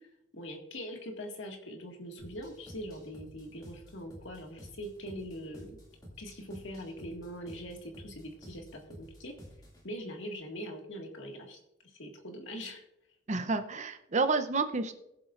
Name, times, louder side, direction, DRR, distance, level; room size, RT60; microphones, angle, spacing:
voice 1, 0.3-5.7 6.2-9.3 9.8-11.6 12.0-12.8, equal, 65° left, 2 dB, 1.9 m, -42 dB
sound 1, 2.2-9.9, equal, 20° left, 2.4 m, -52 dB
voice 2, 13.3-14.9, right 3 dB, 35° right, 9 dB, 0.7 m, -29 dB
21.0 x 7.6 x 2.5 m, 0.86 s
head